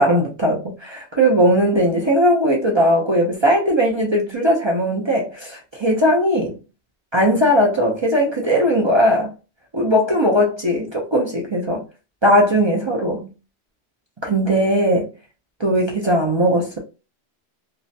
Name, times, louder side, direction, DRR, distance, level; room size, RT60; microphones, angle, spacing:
voice 1, 0.0-6.6 7.1-9.3 9.7-11.8 12.2-13.3 14.2-15.1 15.6-16.8, equal, 45° right, 0.3 m, -18 dB
2.4 x 2.1 x 2.6 m
omnidirectional pair, 1.2 m